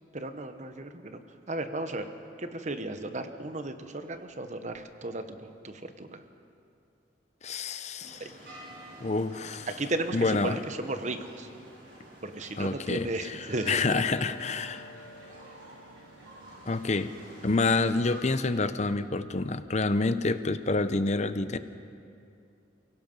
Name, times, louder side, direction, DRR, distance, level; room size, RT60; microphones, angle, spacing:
voice 1, 0.1-1.2 1.5-2.1 2.4-6.2 8.2-8.3 9.7-11.5 12.2-13.8, right 2 dB, 40° right, 8 dB, 1.2 m, -35 dB
voice 2, 7.4-8.3 9.0-9.7 10.1-10.6 12.6-14.9 16.7-17.1 17.4-21.6, left 3 dB, 40° left, 12 dB, 0.7 m, -28 dB
sound 1, 8.0-18.3, equal, 75° right, 5.1 m, -48 dB
29.0 x 17.0 x 5.5 m, 2.5 s
head